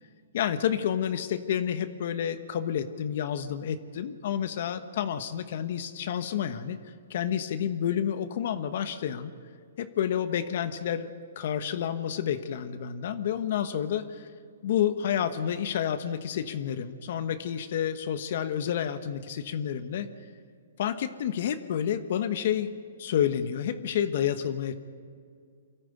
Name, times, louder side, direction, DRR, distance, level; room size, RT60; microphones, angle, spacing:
voice 1, 0.3-6.8 7.1-9.3 9.8-11.1 11.4-14.3 14.6-20.1 20.8-22.7 23.0-24.8, left 9 dB, 60° left, 10 dB, 1.2 m, -29 dB
23.5 x 14.0 x 8.4 m, 2.1 s
hypercardioid pair, 140°, 0 cm